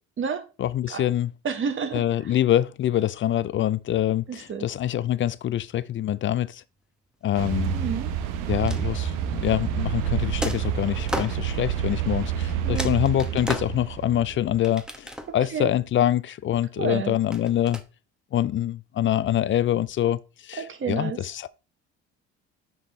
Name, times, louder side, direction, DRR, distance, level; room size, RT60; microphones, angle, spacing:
voice 1, 0.6-1.3 1.9-6.6 7.2-7.8 8.5-15.1 15.3-17.8 18.3-21.5, left 12 dB, 40° left, 0.5 m, -25 dB
voice 2, 1.4-2.3 4.3-4.7 7.7-8.1 12.6-12.9 15.3-15.7 16.8-17.2 20.6-21.2, right 6 dB, 40° right, 1.4 m, -30 dB
sound 1, 7.3-14.5, right 9 dB, 75° right, 0.9 m, -28 dB
sound 2, 8.7-9.3 10.4-11.4 12.3-12.4 12.8-14.1 14.6-15.5 17.3-17.8, equal, ahead, 1.0 m, -35 dB
5.9 x 5.3 x 3.2 m
supercardioid pair, 75°, 31 cm